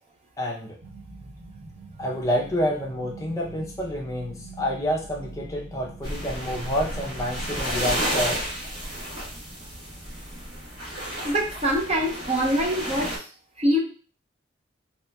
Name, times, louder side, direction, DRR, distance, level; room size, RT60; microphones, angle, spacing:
voice 1, 0.4-0.8 2.0-8.4, equal, 15° left, -2 dB, 0.5 m, -28 dB
sound 1, 0.8-7.8, right 2 dB, 85° right, 0.9 m, -43 dB
sound 2, 6.0-13.2, equal, 55° right, 1.4 m, -32 dB
voice 2, 11.2-13.2 13.6-13.8, equal, 35° right, -2 dB, 0.8 m, -24 dB
3.9 x 2.9 x 2.3 m, 0.38 s
head